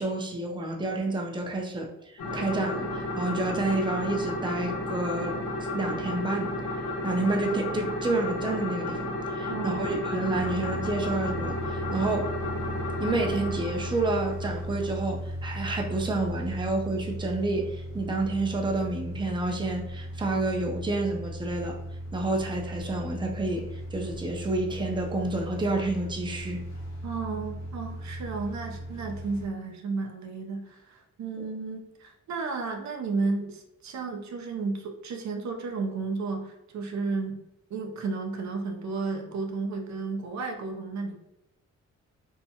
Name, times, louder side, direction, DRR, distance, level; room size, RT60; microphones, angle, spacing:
voice 1, 0.0-5.4 5.7-12.3 13.0-21.8 22.1-26.6, right 2 dB, 15° right, 1 dB, 0.5 m, -29 dB
sound 1, 2.2-15.0, left 1 dB, 85° left, 0.8 m, -33 dB
voice 2, 9.5-10.0 27.0-37.4 37.7-41.2, right 4 dB, 70° right, 3 dB, 0.5 m, -33 dB
sound 2, 10.3-29.5, equal, 45° left, 1.0 m, -37 dB
2.7 x 2.1 x 2.7 m, 0.86 s
cardioid pair, 80°, 29 cm